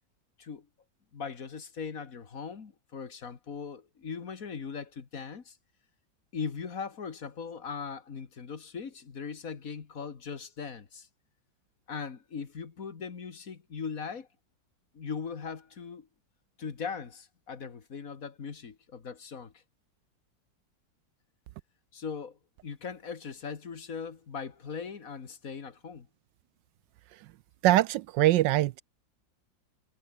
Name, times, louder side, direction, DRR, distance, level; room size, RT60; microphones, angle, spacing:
voice 1, 1.1-5.6 6.3-11.1 11.9-14.3 14.9-16.1 16.6-19.6 21.9-26.1, left 6 dB, 45° left, 2.2 m, -39 dB
voice 2, 27.6-28.8, right 15 dB, 75° right, 1.2 m, -23 dB
omnidirectional pair, 2.0 m